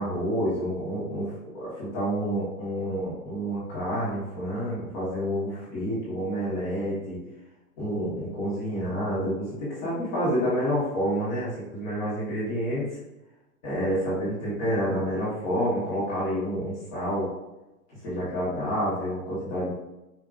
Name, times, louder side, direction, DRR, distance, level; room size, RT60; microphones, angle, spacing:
voice 1, 0.0-7.2 7.8-12.8 13.6-17.3 17.9-19.7, equal, 30° left, -8 dB, 1.4 m, -29 dB
4.8 x 2.7 x 2.5 m, 0.98 s
hypercardioid pair, 165°, 45 cm